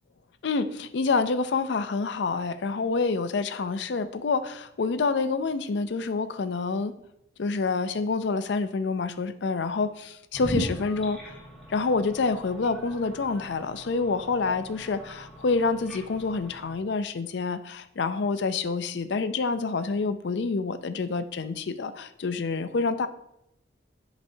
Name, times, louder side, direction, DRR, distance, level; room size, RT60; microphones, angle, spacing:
voice 1, 0.4-6.9 7.4-11.3 11.7-23.1, left 4 dB, 65° left, 11 dB, 0.5 m, -27 dB
sound 1, 10.3-16.7, equal, ahead, 1.5 m, -39 dB
10.5 x 4.1 x 2.7 m, 0.79 s
head